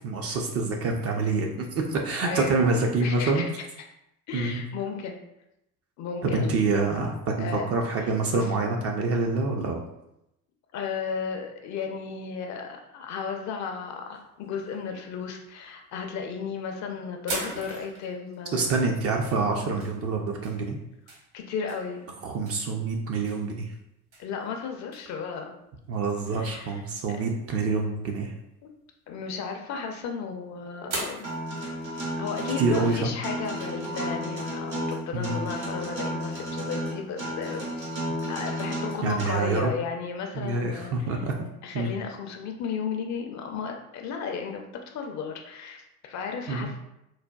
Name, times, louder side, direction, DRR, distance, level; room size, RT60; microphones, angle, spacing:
voice 1, 0.0-3.4 4.3-4.6 6.2-9.8 18.5-20.8 22.2-23.7 25.9-28.3 32.6-33.1 35.1-35.4 39.0-39.7 40.3-41.5 41.7-41.9 46.5-46.7, right 3 dB, 35° right, 1 dB, 0.4 m, -26 dB
voice 2, 2.2-3.5 4.3-5.2 6.0-6.6 7.4-7.7 8.3-8.5 10.7-18.9 21.3-22.1 24.2-25.5 26.3-26.8 27.1-27.2 28.6-28.7 29.1-31.2 31.5-37.9 38.3-40.9 41.6-46.8, left 6 dB, 40° left, 3 dB, 0.5 m, -34 dB
sound 1, 14.1-14.8 15.6-16.1 16.5-16.7 17.3-25.4 25.9-26.4 26.8-26.9 27.1-27.2 27.4-27.8 28.1-28.2 29.1-30.3 30.8-33.0, right 2 dB, 60° right, 1.1 m, -40 dB
Acoustic guitar, 31.2-39.2, equal, 90° right, 1.0 m, -32 dB
4.0 x 2.1 x 2.2 m, 0.85 s
hypercardioid pair, 65°, 48 cm